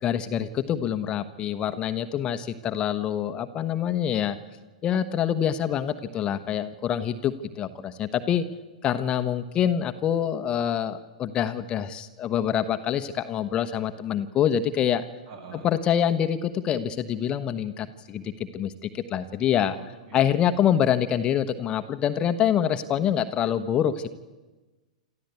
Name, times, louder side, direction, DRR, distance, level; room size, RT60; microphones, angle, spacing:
voice 1, 0.0-4.4 4.8-8.4 8.8-15.0 15.6-19.8 20.1-24.1, left 9 dB, 30° left, 10 dB, 1.1 m, -26 dB
voice 2, 15.3-15.7 19.7-20.5, right 5 dB, 55° right, 3 dB, 7.4 m, -44 dB
27.5 x 14.0 x 8.4 m, 1.2 s
figure-of-eight pair, 105°, 3 cm